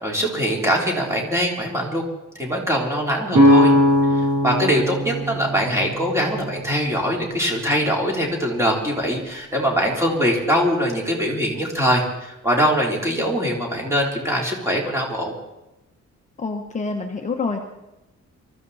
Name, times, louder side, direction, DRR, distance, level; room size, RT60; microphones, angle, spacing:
voice 1, 0.0-2.0 2.4-3.7 4.4-15.3, equal, 10° right, -1 dB, 3.5 m, -22 dB
sound 1, 3.3-7.1, equal, 75° right, 5.9 m, -19 dB
voice 2, 16.4-17.6, left 4 dB, 25° left, 2 dB, 1.2 m, -26 dB
24.0 x 14.0 x 4.2 m, 0.96 s
wide cardioid pair, 175°, 30 cm